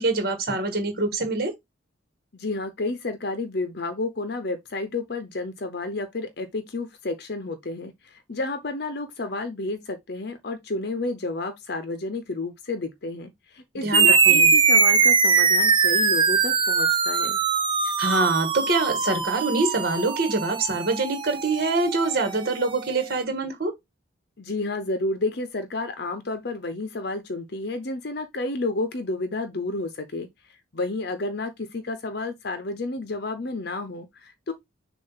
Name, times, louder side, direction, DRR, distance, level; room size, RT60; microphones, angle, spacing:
voice 1, 0.0-1.5 13.7-14.5 18.0-23.7, right 3 dB, 50° right, 1.6 m, -25 dB
voice 2, 2.3-17.4 24.4-30.3 30.7-34.5, left 2 dB, 55° left, 0.7 m, -31 dB
sound 1, 13.9-22.8, right 5 dB, 25° right, 0.6 m, -21 dB
6.6 x 2.5 x 5.6 m
head